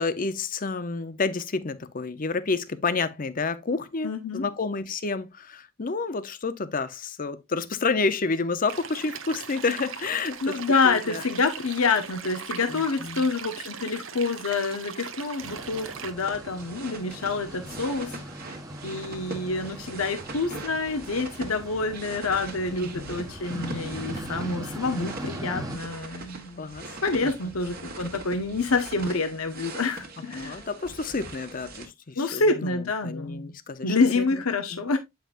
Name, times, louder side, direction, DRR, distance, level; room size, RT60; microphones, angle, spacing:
voice 1, 0.0-10.6 10.8-11.2 12.7-13.2 22.7-23.2 26.6-26.9 27.4-27.5 30.4-34.4 34.7-34.8, left 4 dB, 40° left, 0.7 m, -30 dB
voice 2, 4.0-4.5 10.4-18.1 18.4-18.6 18.8-26.7 27.0-30.6 32.2-33.5 33.8-35.0, left 3 dB, 80° left, 0.9 m, -27 dB
sound 1, 8.7-16.1, right 6 dB, 65° right, 1.0 m, -39 dB
sound 2, 15.4-25.8, right 1 dB, 15° right, 1.2 m, -40 dB
sound 3, 16.2-31.9, right 3 dB, 45° right, 1.5 m, -42 dB
8.7 x 5.7 x 2.5 m
head